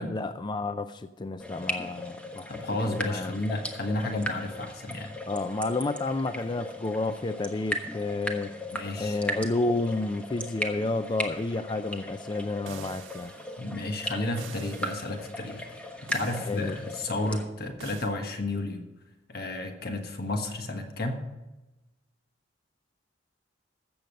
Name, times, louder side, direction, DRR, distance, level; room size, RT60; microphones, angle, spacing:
voice 1, 0.0-2.5 2.9-3.4 5.3-8.5 9.0-13.3 16.5-16.7, left 2 dB, 25° left, 10 dB, 0.4 m, -30 dB
sound 1, 1.4-17.4, left 1 dB, 5° left, 1.2 m, -37 dB
voice 2, 2.5-5.2 8.7-9.2 13.6-18.9 19.3-21.3, left 2 dB, 55° left, 5 dB, 1.3 m, -32 dB
sound 2, 12.7-13.4 14.4-15.1 16.1-16.7 17.8-18.1, right 5 dB, 90° right, 1.1 m, -45 dB
14.0 x 7.9 x 5.3 m, 1.1 s
head